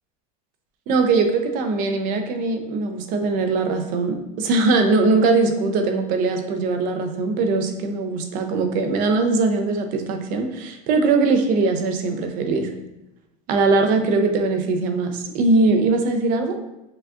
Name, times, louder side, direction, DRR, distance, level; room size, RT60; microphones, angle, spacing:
voice 1, 0.9-12.7 13.5-16.6, right 3 dB, 45° right, 6 dB, 0.6 m, -21 dB
6.0 x 2.4 x 2.4 m, 0.94 s
supercardioid pair, 140°, 20 cm